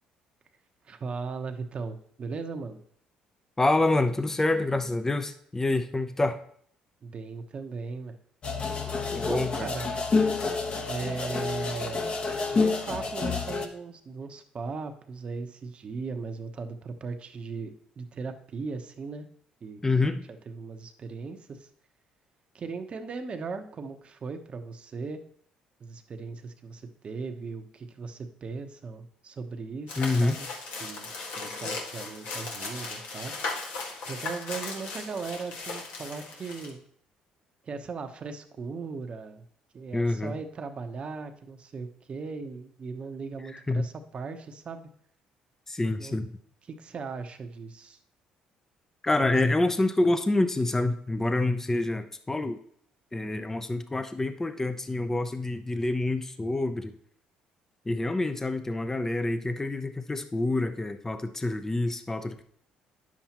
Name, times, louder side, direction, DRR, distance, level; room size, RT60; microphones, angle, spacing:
voice 1, 0.8-2.8 7.0-8.2 9.3-9.9 10.9-12.2 12.5-19.3 19.6-20.2 20.5-21.7 22.5-25.2 25.8-30.5 30.8-33.3 34.0-36.8 37.6-39.4 39.7-44.9 46.0-46.2 46.7-48.0, right 4 dB, 45° right, 7 dB, 0.9 m, -38 dB
voice 2, 3.6-6.4 9.1-9.7 19.8-20.2 30.0-30.4 39.9-40.3 43.5-43.9 45.7-46.3 49.0-52.6 53.1-56.9 57.9-62.4, left 2 dB, 15° left, 9 dB, 0.6 m, -27 dB
sound 1, 8.4-13.7, left 4 dB, 45° left, 1.1 m, -28 dB
sound 2, 29.9-36.7, left 3 dB, 80° left, 1.7 m, -37 dB
9.7 x 7.3 x 2.9 m, 0.64 s
supercardioid pair, 80°, 3 cm